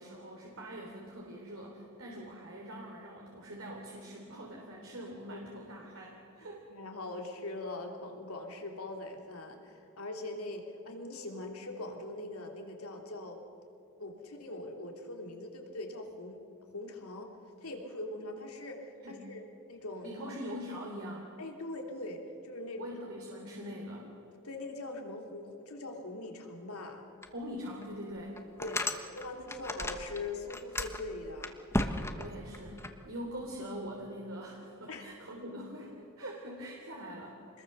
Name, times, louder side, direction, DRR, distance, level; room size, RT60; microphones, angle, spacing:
voice 1, 0.0-6.6 19.0-19.3 20.0-21.3 22.8-24.1 27.3-28.4 32.2-37.4, equal, 65° right, -1 dB, 3.4 m, -43 dB
voice 2, 6.7-13.4 14.0-17.3 17.6-20.1 21.4-22.9 24.4-27.0 28.6-31.6 34.9-35.1 37.5-37.6, left 2 dB, 90° left, 2 dB, 3.1 m, -42 dB
sound 1, 27.2-27.3 27.8-27.9 28.4-30.2 30.4-32.9, left 1 dB, 10° left, 1.1 m, -34 dB
27.0 x 21.0 x 6.8 m, 2.9 s
head